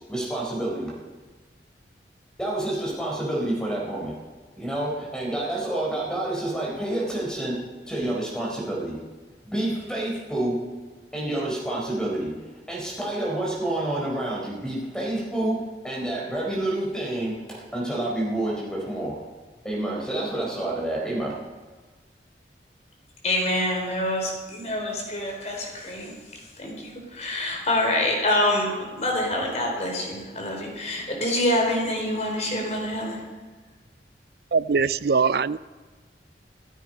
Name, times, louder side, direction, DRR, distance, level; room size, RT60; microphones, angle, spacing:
voice 1, 0.1-0.9 2.4-4.1 4.6-7.6 7.9-9.0 9.4-10.6 11.1-12.3 12.7-19.2 19.6-21.3, right 1 dB, 5° left, -2 dB, 4.4 m, -28 dB
voice 2, 23.2-26.1 26.6-33.2, left 1 dB, 40° left, 0 dB, 4.2 m, -26 dB
voice 3, 34.5-35.6, right 5 dB, 60° right, 18 dB, 0.4 m, -22 dB
27.0 x 9.2 x 5.3 m, 1.3 s
head